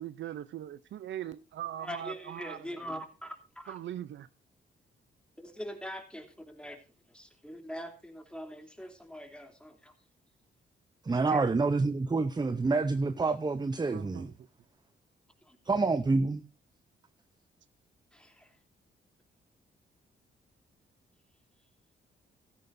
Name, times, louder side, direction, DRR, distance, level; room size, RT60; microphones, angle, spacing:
voice 1, 0.0-2.8 3.7-4.3 13.9-14.5, right 11 dB, 75° right, 0.6 m, -41 dB
voice 2, 1.7-3.8 5.4-6.8 7.1-9.9 11.1-11.5 15.4-15.6 18.1-18.5, equal, 5° left, 2.9 m, -43 dB
voice 3, 11.0-14.3 15.7-16.4, right 3 dB, 20° right, 0.7 m, -27 dB
15.5 x 13.0 x 2.6 m
cardioid pair, 65°, 20 cm